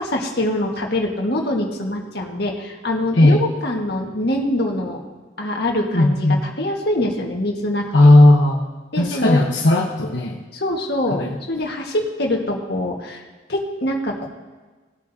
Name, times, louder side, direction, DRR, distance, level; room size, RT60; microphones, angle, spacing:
voice 1, 0.0-5.0 5.4-7.9 8.9-9.5 10.5-13.2 13.5-14.3, left 1 dB, 55° left, 0 dB, 1.7 m, -24 dB
voice 2, 5.9-6.4 7.9-8.6 9.0-10.4 11.1-11.4, left 1 dB, 75° left, -2 dB, 1.1 m, -15 dB
18.5 x 8.5 x 2.8 m, 1.3 s
head